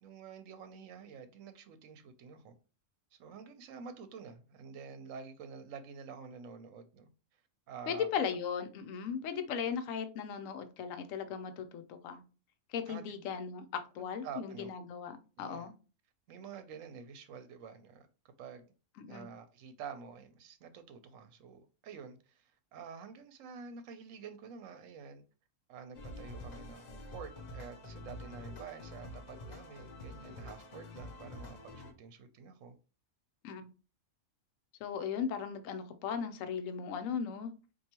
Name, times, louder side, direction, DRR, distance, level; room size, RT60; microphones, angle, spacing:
voice 1, 0.0-2.5 3.1-7.1 7.7-8.1 12.9-13.1 14.2-14.7 15.4-15.7 16.3-18.1 18.4-18.7 19.1-25.2 25.7-32.8, right 6 dB, 80° right, 1.0 m, -48 dB
voice 2, 7.9-12.2 12.7-15.7 19.0-19.3 33.4-33.7 34.8-37.5, left 7 dB, 80° left, 1.0 m, -37 dB
sound 1, 25.9-31.9, left 1 dB, 50° left, 0.5 m, -47 dB
4.5 x 2.6 x 2.9 m
omnidirectional pair, 1.4 m